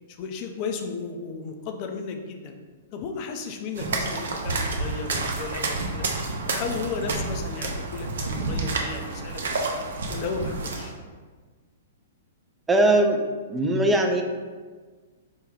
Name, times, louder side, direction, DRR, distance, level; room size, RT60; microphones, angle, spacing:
voice 1, 0.1-2.5 2.9-6.0 6.4-9.8 10.1-10.9, left 5 dB, 40° left, 4 dB, 0.5 m, -34 dB
sound 1, 3.8-10.9, right 3 dB, 70° right, 0.6 m, -29 dB
voice 2, 12.7-13.2 13.5-14.2, right 1 dB, 10° right, 3 dB, 0.4 m, -20 dB
4.4 x 2.2 x 3.6 m, 1.4 s
hypercardioid pair, 120°, 0 cm